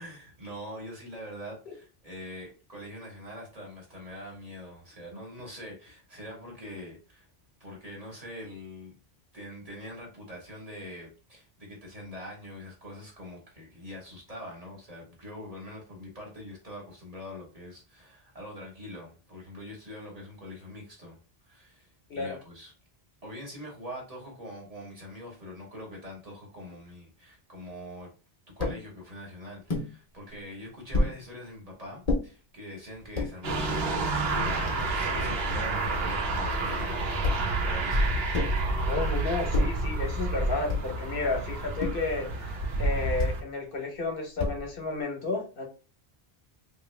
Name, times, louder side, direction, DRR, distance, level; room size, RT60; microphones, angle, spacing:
voice 1, 0.0-7.3 7.6-9.0 9.3-21.2 21.4-22.7 23.2-28.1 28.6-38.1, left 1 dB, 40° right, 1.3 m, -43 dB
sound 1, 28.6-28.8 29.7-29.9 30.9-31.2 32.1-32.2 33.0-33.3 34.1-34.2 34.4-35.4 37.2-37.6 38.3-38.7 39.5-39.9 40.7-41.0 41.8-42.1 43.2-43.4 44.4-44.8, left 2 dB, 40° left, 0.8 m, -29 dB
sound 2, 33.4-43.4, right 2 dB, 75° right, 1.0 m, -29 dB
voice 2, 38.9-45.6, left 3 dB, 65° left, 1.0 m, -32 dB
3.1 x 2.5 x 3.1 m
omnidirectional pair, 1.0 m